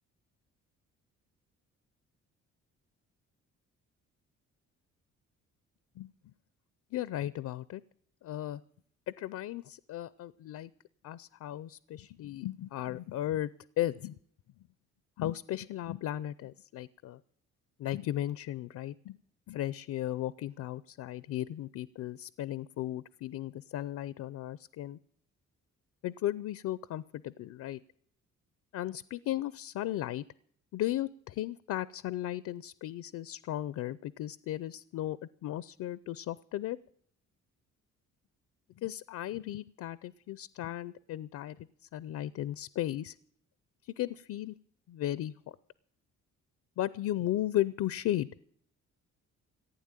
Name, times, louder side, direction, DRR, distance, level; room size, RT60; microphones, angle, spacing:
voice 1, 6.9-7.8 8.2-8.6 9.1-10.7 11.0-13.5 13.8-14.1 15.2-17.2 17.8-19.2 19.5-25.0 26.0-27.8 28.7-30.2 30.7-36.8 38.8-41.6 41.9-43.2 43.8-44.5 44.9-45.6 46.8-48.3, left 13 dB, 70° left, 18 dB, 0.5 m, -35 dB
15.5 x 9.1 x 9.0 m, 0.65 s
cardioid pair, 90°, 30 cm